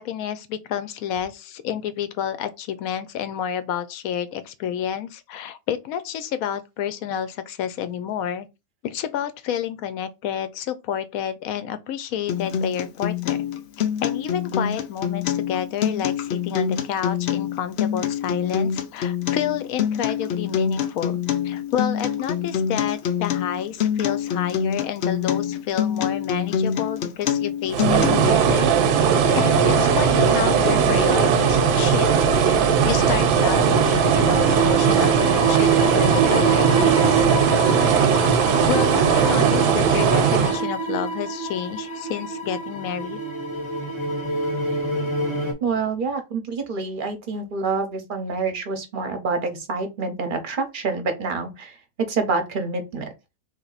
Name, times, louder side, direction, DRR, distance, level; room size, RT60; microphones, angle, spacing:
voice 1, 0.0-8.5 8.8-13.5 14.0-28.7 29.4-32.1 32.5-37.2 38.7-43.2, left 9 dB, 70° left, 0.9 m, -29 dB
Acoustic guitar, 12.3-28.3, left 8 dB, 90° left, 0.5 m, -25 dB
sound 1, 27.7-40.6, right 7 dB, 80° right, 1.2 m, -19 dB
sound 2, 29.3-45.5, right 3 dB, 25° left, 0.8 m, -26 dB
voice 2, 45.6-53.1, right 4 dB, 45° right, 0.7 m, -27 dB
3.4 x 2.7 x 3.9 m
omnidirectional pair, 1.7 m